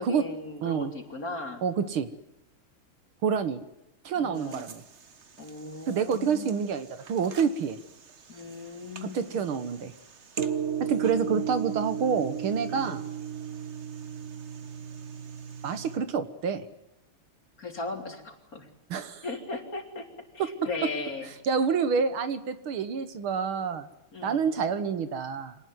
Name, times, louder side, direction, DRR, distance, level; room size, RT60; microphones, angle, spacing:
voice 1, 0.0-1.6 4.1-4.7 5.4-6.6 8.3-9.4 12.7-13.0 17.6-18.7 19.2-20.1 20.3-21.3 24.1-24.5, left 3 dB, 40° left, 3 dB, 3.8 m, -37 dB
voice 2, 0.6-0.9 1.6-2.1 3.2-3.6 4.1-4.8 5.9-7.8 9.0-9.9 10.8-13.0 15.6-16.7 18.9-19.2 20.4-20.5 21.4-23.9 24.2-25.6, right 6 dB, 70° right, 11 dB, 2.1 m, -28 dB
sound 1, 4.4-16.0, right 8 dB, 40° right, 1.2 m, -36 dB
26.0 x 19.0 x 9.5 m, 0.88 s
omnidirectional pair, 2.4 m